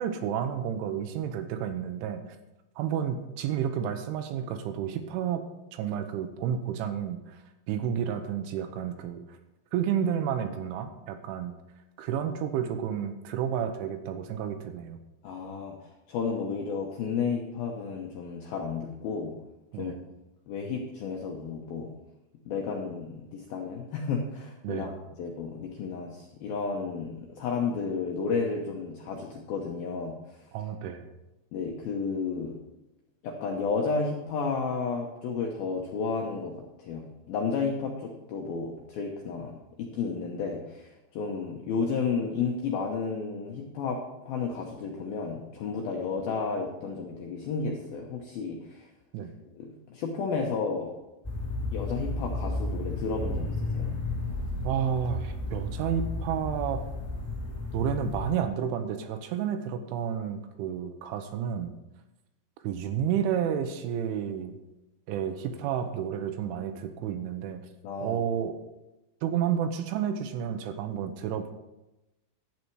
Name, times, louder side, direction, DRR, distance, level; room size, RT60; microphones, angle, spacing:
voice 1, 0.0-2.2 2.8-5.4 5.7-7.4 7.7-9.2 9.7-11.5 12.0-15.0 19.7-20.0 24.6-24.9 30.5-31.1 49.1-49.3 54.6-56.9 57.7-61.7 62.6-64.6 65.1-67.6 68.0-68.6 69.2-71.5, right 8 dB, 80° right, 7 dB, 3.2 m, -31 dB
voice 2, 15.2-15.8 16.1-19.3 19.8-19.9 20.5-21.9 22.5-24.9 25.2-30.5 31.5-32.6 33.2-36.5 36.8-44.0 44.3-48.9 49.5-50.9 51.7-53.9 67.8-68.2, left 5 dB, 85° left, 0 dB, 2.1 m, -32 dB
sound 1, 51.2-58.3, left 2 dB, 15° left, 1.8 m, -33 dB
11.5 x 8.8 x 4.7 m, 0.96 s
omnidirectional pair, 5.7 m